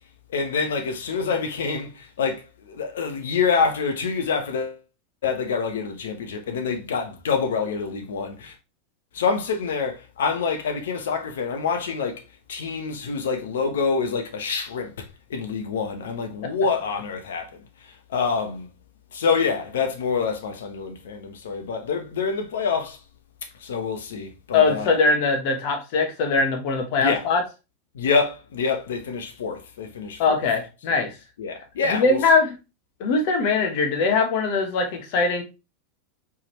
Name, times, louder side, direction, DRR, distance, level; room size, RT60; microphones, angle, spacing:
voice 1, 0.3-4.8 5.2-8.5 9.1-12.2 12.5-15.0 15.3-17.5 17.8-18.7 19.1-23.0 23.6-24.9 27.0-27.2 27.9-30.4 30.9-31.0 31.4-32.2, left 5 dB, 80° left, 1.0 m, -26 dB
voice 2, 24.5-27.4 30.2-31.1 31.9-32.5 33.0-35.4, left 4 dB, 60° left, 1.3 m, -21 dB
4.7 x 3.6 x 3.1 m
hypercardioid pair, 95°, 0 cm